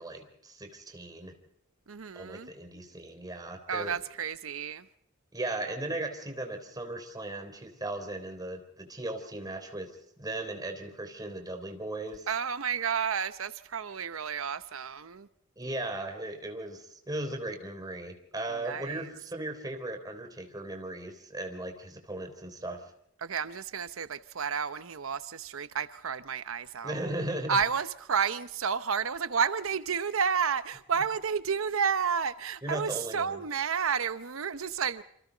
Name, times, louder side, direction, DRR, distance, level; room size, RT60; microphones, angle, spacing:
voice 1, 0.0-1.4 2.1-4.0 5.3-9.9 10.2-12.3 15.6-22.8 26.8-27.6 32.6-33.4, right 1 dB, 20° right, 3.6 m, -37 dB
voice 2, 1.9-2.5 3.7-4.9 12.3-15.3 18.5-19.1 23.2-27.1 27.5-35.0, right 6 dB, 90° right, 0.8 m, -31 dB
27.5 x 26.0 x 4.0 m
head